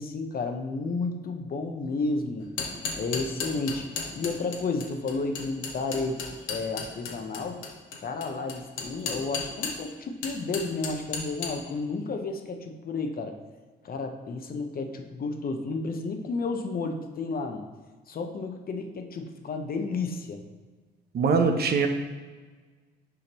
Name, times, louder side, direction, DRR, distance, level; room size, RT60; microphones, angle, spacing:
voice 1, 0.0-2.5 2.9-3.8 4.2-6.2 6.5-7.6 8.0-13.4 13.8-17.6 18.1-20.4, left 3 dB, 50° left, 5 dB, 0.8 m, -32 dB
sound 1, 2.4-9.9 10.2-11.5, left 5 dB, 85° left, 1.1 m, -33 dB
voice 2, 21.1-21.9, right 5 dB, 55° right, 6 dB, 0.7 m, -22 dB
6.9 x 5.1 x 3.0 m, 1.4 s
cardioid pair, 90°, 20 cm